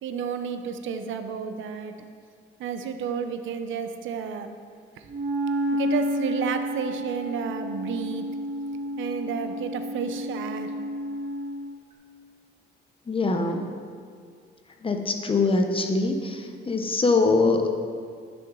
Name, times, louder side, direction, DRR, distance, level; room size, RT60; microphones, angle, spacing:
voice 1, 0.0-1.9 2.6-4.5 5.0-5.1 5.7-8.2 9.0-10.7, right 6 dB, 75° right, 8 dB, 0.7 m, -31 dB
Wind instrument woodwind instrument, 5.1-11.7, equal, 35° right, 1.8 m, -30 dB
voice 2, 13.1-13.7 14.8-17.7, left 3 dB, 25° left, 4 dB, 0.8 m, -23 dB
10.5 x 6.1 x 3.8 m, 2.1 s
cardioid pair, 90°, 20 cm